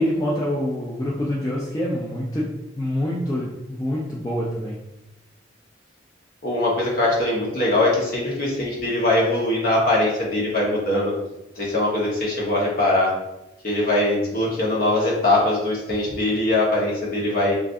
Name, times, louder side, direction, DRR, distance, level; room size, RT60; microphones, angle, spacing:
voice 1, 0.0-4.8, left 1 dB, 15° left, -5 dB, 0.3 m, -26 dB
voice 2, 6.4-11.1 11.5-13.1 13.6-17.5, left 1 dB, 50° left, -4 dB, 0.9 m, -21 dB
2.5 x 2.4 x 3.5 m, 0.94 s
head